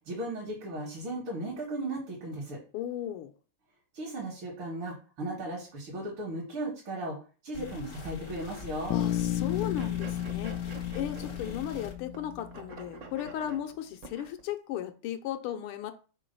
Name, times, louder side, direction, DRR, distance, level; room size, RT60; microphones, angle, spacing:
voice 1, 0.1-2.6 3.9-7.2 7.4-9.0, right 1 dB, 70° right, 2.5 m, -36 dB
voice 2, 2.7-3.3 8.9-15.9, left 11 dB, 90° left, 1.6 m, -36 dB
sound 1, 7.5-11.9, left 7 dB, 50° left, 0.6 m, -43 dB
Bass guitar, 8.9-12.8, left 11 dB, 70° left, 1.2 m, -33 dB
sound 2, 9.6-11.8 12.1-14.4, right 3 dB, 50° right, 0.9 m, -47 dB
4.9 x 3.8 x 5.3 m
omnidirectional pair, 2.4 m